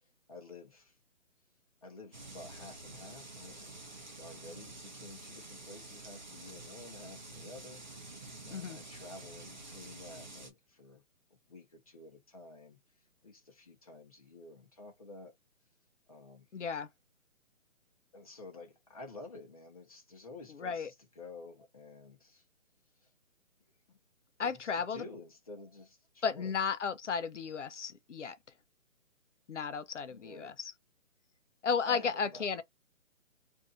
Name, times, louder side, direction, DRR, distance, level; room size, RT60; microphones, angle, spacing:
voice 1, 0.3-1.0 1.8-3.7 4.2-11.0 11.5-12.8 13.2-15.3 16.1-16.5 18.1-22.4 23.0-23.1 23.9-24.0 24.4-26.6 30.1-30.5 31.8-32.5, left 2 dB, 25° left, 0.9 m, -51 dB
sound 1, 2.1-10.5, right 2 dB, 35° right, 0.7 m, -49 dB
voice 2, 16.5-16.9 20.6-20.9 24.4-25.0 26.2-28.4 29.5-30.7 31.6-32.6, left 6 dB, 60° left, 0.6 m, -34 dB
2.7 x 2.5 x 3.7 m
hypercardioid pair, 175°, 40 cm